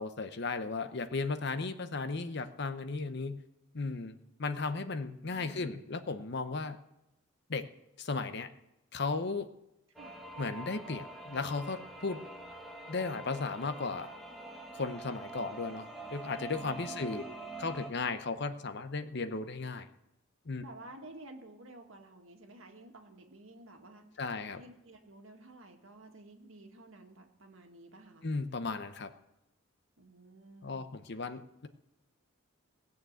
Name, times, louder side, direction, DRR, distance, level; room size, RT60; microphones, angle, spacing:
voice 1, 0.0-3.4 3.7-6.8 7.5-7.7 8.0-8.5 8.9-9.5 10.4-12.2 12.9-14.1 14.7-17.2 17.6-19.9 20.5-20.6 24.2-24.6 28.2-29.1 30.6-31.7, left 4 dB, 55° left, 10 dB, 0.8 m, -35 dB
voice 2, 5.2-6.0 9.9-10.2 16.8-17.3 20.6-24.0 24.5-28.3 30.0-30.9, right 1 dB, 75° right, 3 dB, 1.9 m, -52 dB
sound 1, 10.0-17.9, right 2 dB, ahead, 1.4 m, -45 dB
18.5 x 6.7 x 8.0 m, 0.89 s
head